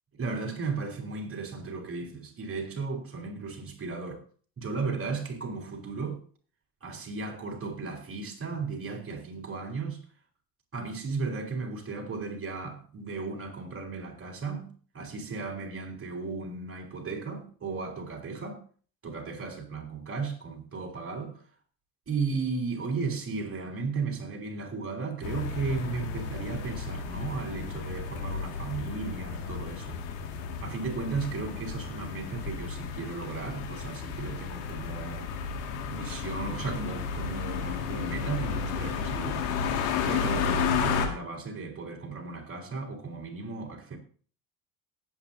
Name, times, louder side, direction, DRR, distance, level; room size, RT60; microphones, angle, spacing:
voice 1, 0.1-4.2 4.6-6.2 6.8-10.0 10.7-18.6 19.0-21.4 22.1-30.0 30.6-35.3 35.9-39.4 40.1-44.0, right 4 dB, 25° right, 4.0 m, -35 dB
sound 1, 25.2-41.1, left 6 dB, 70° left, 2.1 m, -32 dB
19.0 x 8.8 x 2.7 m
hypercardioid pair, 75°, 48 cm